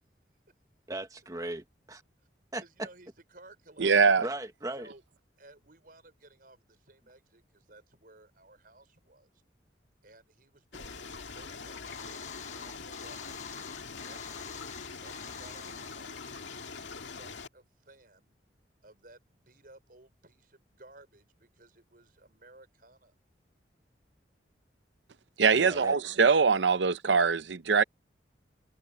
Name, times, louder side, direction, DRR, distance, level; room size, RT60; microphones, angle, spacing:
voice 1, 0.9-2.0 2.5-2.9 4.2-4.9 25.5-26.0, right 1 dB, 20° right, 1.4 m, -37 dB
voice 2, 2.6-4.1 4.8-5.0 5.4-9.4 10.0-13.2 14.0-14.7 15.0-18.4 18.8-23.2, right 2 dB, 50° right, 5.9 m, -57 dB
voice 3, 3.8-4.3 25.4-27.8, right 5 dB, 80° right, 0.7 m, -23 dB
sound 1, 10.7-17.5, left 4 dB, 85° left, 2.1 m, -43 dB
sound 2, 11.9-17.3, left 6 dB, 40° left, 1.4 m, -47 dB
head